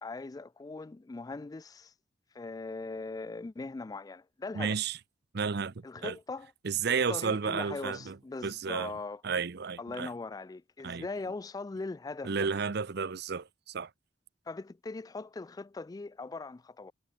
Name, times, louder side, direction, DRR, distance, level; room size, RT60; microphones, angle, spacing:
voice 1, 0.0-1.9 2.3-4.8 5.8-6.5 6.9-9.2 9.8-12.5 14.5-16.9, left 3 dB, 20° left, 0.3 m, -40 dB
voice 2, 4.5-5.0 5.3-5.7 6.0-6.2 6.6-8.2 8.4-8.9 9.2-10.1 10.8-11.1 12.2-13.9, right 5 dB, 60° right, 0.7 m, -32 dB
head